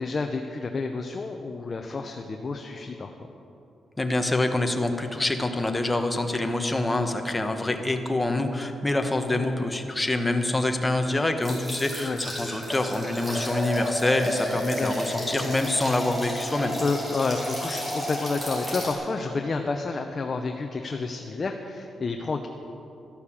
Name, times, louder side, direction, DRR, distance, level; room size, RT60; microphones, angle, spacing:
voice 1, 0.0-3.2 7.0-7.1 12.0-12.2 14.8-14.9 16.8-22.5, left 3 dB, 30° left, 4 dB, 0.7 m, -30 dB
voice 2, 4.0-16.8, left 2 dB, 15° left, 5 dB, 1.1 m, -26 dB
sound 1, 11.4-18.9, equal, 15° right, 4.3 m, -32 dB
12.5 x 11.5 x 7.3 m, 2.8 s
cardioid pair, 135°, 0 cm